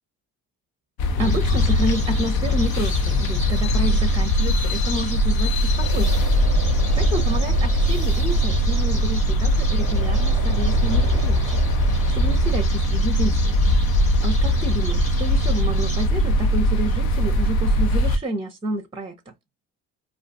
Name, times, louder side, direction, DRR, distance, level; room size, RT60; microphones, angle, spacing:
sound 1, 1.0-18.2, equal, 65° left, 0.6 m, -20 dB
sound 2, 1.2-16.1, left 1 dB, 20° left, 0.9 m, -37 dB
voice 1, 1.2-6.3 7.0-11.6 12.1-13.6 14.2-19.2, right 1 dB, 15° right, 0.6 m, -29 dB
sound 3, 5.8-12.7, right 10 dB, 60° right, 0.5 m, -31 dB
2.4 x 2.3 x 2.6 m
supercardioid pair, 65°, 39 cm